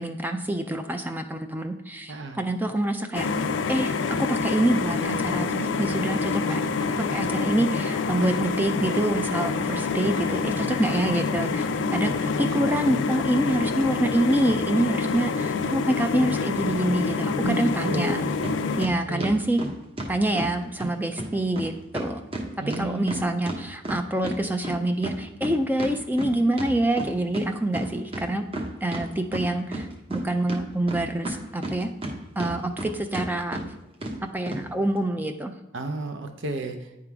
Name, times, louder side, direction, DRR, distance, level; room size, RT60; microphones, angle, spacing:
voice 1, 0.0-3.3 3.7-6.7 7.1-18.2 18.8-19.6 20.1-22.3 22.8-28.5 28.8-31.9 32.4-33.6 34.3-35.5, right 1 dB, 10° right, 6 dB, 0.4 m, -26 dB
voice 2, 2.1-2.4 17.4-18.2 19.1-19.4 22.6-23.2 35.7-36.9, right 2 dB, 65° right, 5 dB, 0.6 m, -32 dB
sound 1, 3.1-18.9, left 4 dB, 65° left, 0.4 m, -27 dB
sound 2, 18.4-18.6 18.8-20.5 20.8-20.9 21.2-21.3 21.6-21.7 21.9-24.4 24.6-27.4 27.7-27.8 28.1-29.0 29.3-30.2 30.5-32.1 32.4-32.9 33.1-33.3 33.5-33.6 34.0-34.2 34.5-34.6, right 1 dB, 30° right, 1.0 m, -32 dB
9.6 x 3.8 x 4.5 m, 0.94 s
head